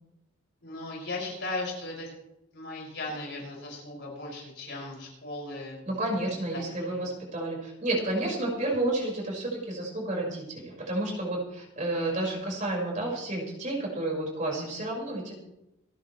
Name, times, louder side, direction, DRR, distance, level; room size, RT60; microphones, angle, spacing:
voice 1, 0.6-2.1 2.5-5.8 6.5-6.6 6.9-7.1 14.6-14.8, left 2 dB, 60° left, -3 dB, 6.4 m, -37 dB
voice 2, 5.9-15.4, right 2 dB, 40° right, -2 dB, 5.4 m, -31 dB
28.0 x 10.0 x 3.3 m, 0.88 s
head